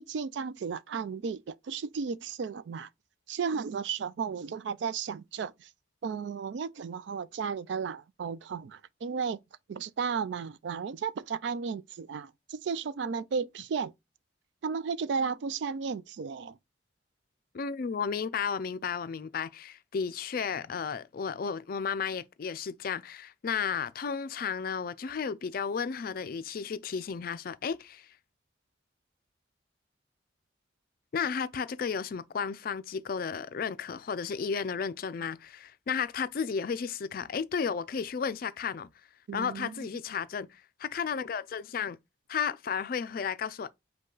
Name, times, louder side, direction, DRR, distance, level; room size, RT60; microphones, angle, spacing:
voice 1, 0.0-2.9 3.3-5.7 6.0-9.4 9.7-13.9 14.6-16.6 39.3-39.9, right 6 dB, 70° right, 0.3 m, -34 dB
voice 2, 17.5-28.1 31.1-38.9 39.3-42.0 42.3-43.7, left 6 dB, 50° left, 0.4 m, -33 dB
5.2 x 2.3 x 3.9 m
head